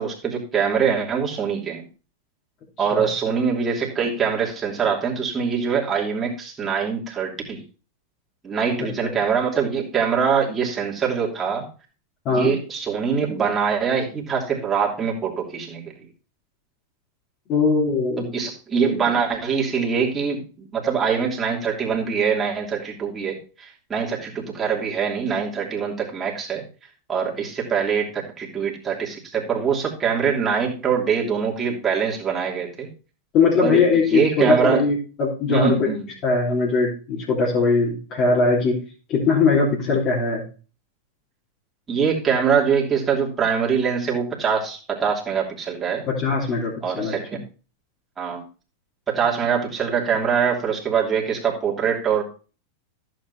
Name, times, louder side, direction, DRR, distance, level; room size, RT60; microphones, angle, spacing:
voice 1, 0.0-1.9 2.8-7.6 8.4-11.7 12.3-15.9 18.2-26.6 27.1-32.9 33.6-33.8 34.1-34.8 35.5-36.1 41.9-46.1 46.8-47.4 48.2-48.5 49.1-52.2, right 6 dB, 20° right, -3 dB, 2.9 m, -23 dB
voice 2, 2.8-3.1 12.2-12.5 17.5-18.3 33.3-35.9 36.2-38.8 39.1-40.4 46.1-47.1, left 4 dB, 35° left, -5 dB, 3.2 m, -20 dB
14.5 x 7.9 x 2.7 m, 0.36 s
figure-of-eight pair, 90°, 0 cm